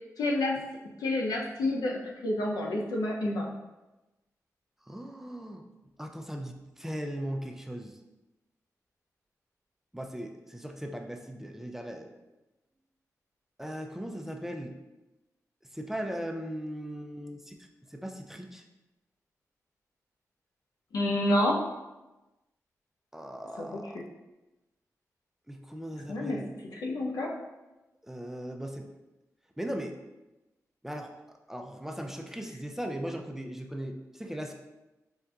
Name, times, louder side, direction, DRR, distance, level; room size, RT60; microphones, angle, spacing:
voice 1, 0.2-0.6 1.0-3.5 20.9-21.6 23.6-23.7 26.1-26.4 26.7-27.3, left 1 dB, 85° left, -1 dB, 0.6 m, -28 dB
voice 2, 4.9-5.6 6.0-8.0 9.9-12.1 13.6-14.7 15.7-18.7 23.1-24.0 25.5-26.5 28.0-28.9 29.6-29.9 30.8-34.5, equal, 5° right, 3 dB, 0.4 m, -38 dB
5.4 x 2.5 x 2.3 m, 1.0 s
cardioid pair, 60°, 6 cm